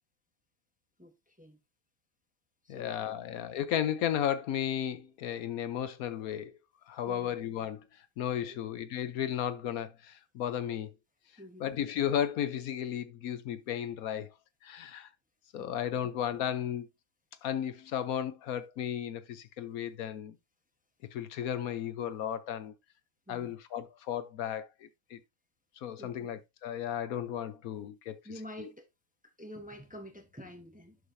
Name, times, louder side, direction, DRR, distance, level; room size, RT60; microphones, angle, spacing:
voice 1, 1.0-1.6 2.6-3.2 7.1-7.3 8.4-8.6 11.4-11.7 15.6-15.8 23.3-23.5 26.0-26.3 28.2-28.9 29.4-31.0, equal, 5° right, 0.9 m, -48 dB
voice 2, 2.7-6.5 6.9-7.8 8.2-10.9 11.6-14.3 14.6-15.1 15.5-16.9 17.4-20.3 21.1-22.7 23.3-25.2 25.8-28.2 28.6-28.7, left 10 dB, 75° left, 1.1 m, -34 dB
11.0 x 4.9 x 2.6 m
omnidirectional pair, 1.6 m